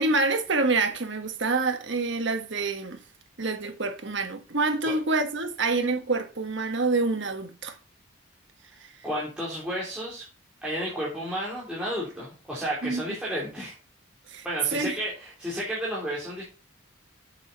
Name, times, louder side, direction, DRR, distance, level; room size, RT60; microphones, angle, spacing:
voice 1, 0.0-3.0 3.4-7.8 12.8-13.0 14.3-14.4 14.7-14.9, right 3 dB, 60° right, 1.5 m, -27 dB
voice 2, 9.0-10.2 10.6-13.7 14.4-16.4, equal, 5° right, 3.0 m, -32 dB
7.3 x 7.1 x 5.7 m
head